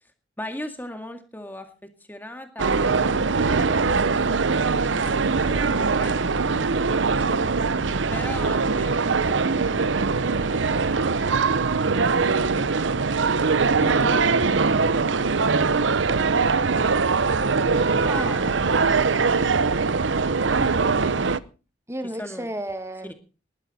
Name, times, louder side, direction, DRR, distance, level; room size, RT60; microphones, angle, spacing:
voice 1, 0.0-7.4 8.1-11.5 12.0-12.7 13.4-16.7 17.4-18.3 19.4-19.5 22.2-22.5 23.0-23.1, left 1 dB, 10° left, 6 dB, 2.0 m, -41 dB
sound 1, 2.6-21.4, right 4 dB, 80° right, 0.8 m, -22 dB
voice 2, 13.8-14.2 18.0-18.6 21.9-23.1, right 1 dB, 15° right, 9 dB, 1.8 m, -33 dB
20.5 x 12.0 x 4.2 m, 0.35 s
head